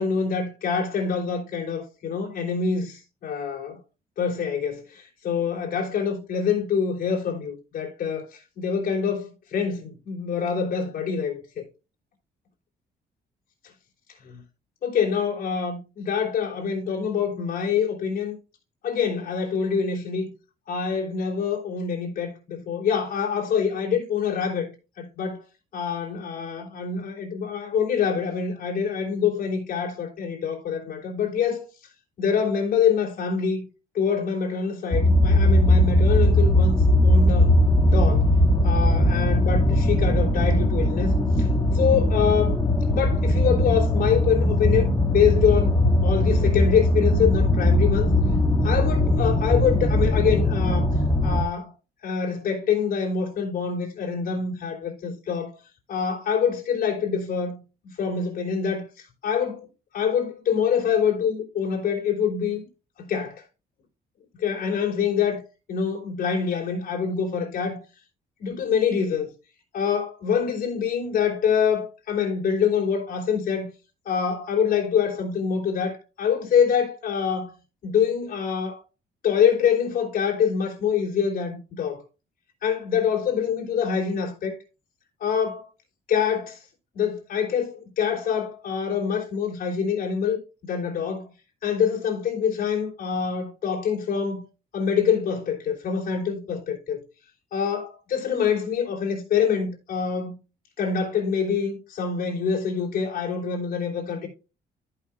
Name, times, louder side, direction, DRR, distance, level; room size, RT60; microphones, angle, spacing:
voice 1, 0.0-3.8 4.2-11.6 14.2-14.4 14.8-18.4 18.8-20.3 20.7-24.7 25.0-25.4 25.7-31.6 32.2-33.6 33.9-37.6 37.9-38.3 38.6-41.5 41.7-42.6 42.9-48.1 48.6-50.9 51.2-51.7 52.0-55.6 55.9-59.7 59.9-62.6 63.0-63.4 64.4-65.4 65.7-67.8 68.4-69.3 69.7-73.7 74.0-77.5 77.8-78.8 79.2-82.0 82.6-84.6 85.2-85.7 86.1-86.6 86.9-91.3 91.6-94.4 94.7-97.0 97.5-100.3 100.8-104.3, left 7 dB, 60° left, 3.3 m, -25 dB
sound 1, 34.9-51.4, left 1 dB, 20° left, 1.6 m, -20 dB
14.5 x 5.7 x 2.3 m
cardioid pair, 125°, 17 cm